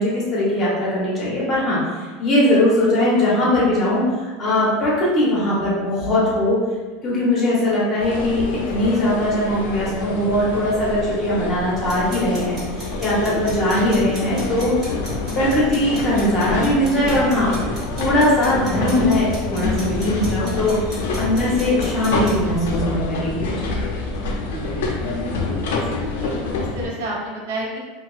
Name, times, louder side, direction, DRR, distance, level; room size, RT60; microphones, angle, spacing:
voice 1, 0.0-6.6 7.0-14.9 15.3-17.5 17.9-23.6, left 1 dB, 30° left, -7 dB, 0.9 m, -20 dB
sound 1, 8.0-26.9, left 3 dB, 85° left, 0.4 m, -27 dB
sound 2, 11.9-22.3, right 1 dB, 20° right, 1.1 m, -38 dB
voice 2, 24.3-27.8, right 1 dB, 75° right, -3 dB, 0.6 m, -32 dB
2.6 x 2.2 x 2.4 m, 1.3 s
supercardioid pair, 150°, 0 cm